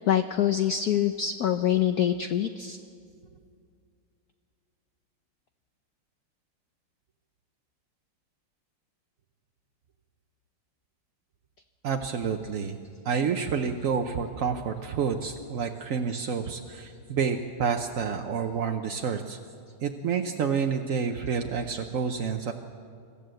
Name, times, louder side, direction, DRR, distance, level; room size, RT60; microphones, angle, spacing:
voice 1, 0.0-2.8, left 10 dB, 70° left, 8 dB, 0.9 m, -25 dB
voice 2, 11.8-12.8 13.0-19.4 19.8-22.5, right 6 dB, 60° right, 4 dB, 0.8 m, -29 dB
25.5 x 14.0 x 7.8 m, 2.3 s
omnidirectional pair, 2.4 m